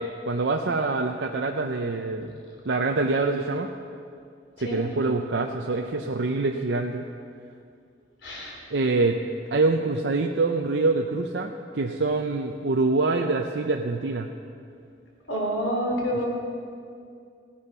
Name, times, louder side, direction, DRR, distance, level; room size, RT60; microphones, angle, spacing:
voice 1, 0.0-3.7 4.6-7.0 8.7-9.2 9.5-14.3, right 3 dB, 75° right, 3 dB, 0.6 m, -25 dB
voice 2, 8.2-8.5 15.3-16.2, equal, 90° left, -2 dB, 3.6 m, -27 dB
16.5 x 9.9 x 5.5 m, 2.4 s
head